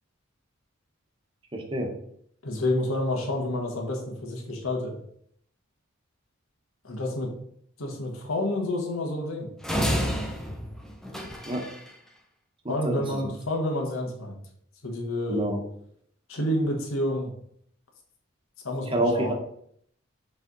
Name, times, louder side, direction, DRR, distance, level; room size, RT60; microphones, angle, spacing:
voice 1, 1.5-1.9 11.4-11.6 12.6-13.0 15.3-15.6 18.9-19.3, right 1 dB, 25° right, 3 dB, 1.0 m, -27 dB
voice 2, 2.4-4.9 6.8-7.3 7.8-9.5 12.7-14.4 14.8-15.5 16.3-17.3 18.6-19.3, left 1 dB, 90° left, 0 dB, 1.3 m, -29 dB
sound 1, 9.6-11.9, equal, 5° left, 0.6 m, -29 dB
7.1 x 3.4 x 4.0 m, 0.67 s
head